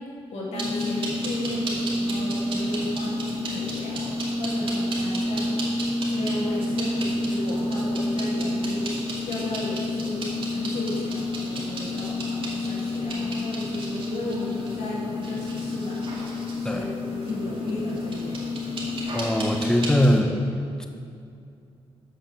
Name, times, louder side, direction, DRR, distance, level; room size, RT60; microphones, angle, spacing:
voice 1, 0.3-10.2 10.5-18.5, left 2 dB, 75° left, -5 dB, 2.3 m, -34 dB
sound 1, 0.5-20.2, left 1 dB, 50° right, 2.3 m, -29 dB
voice 2, 19.1-20.9, equal, 5° left, 4 dB, 0.7 m, -23 dB
8.4 x 5.9 x 6.3 m, 2.4 s
cardioid pair, 90°, 11 cm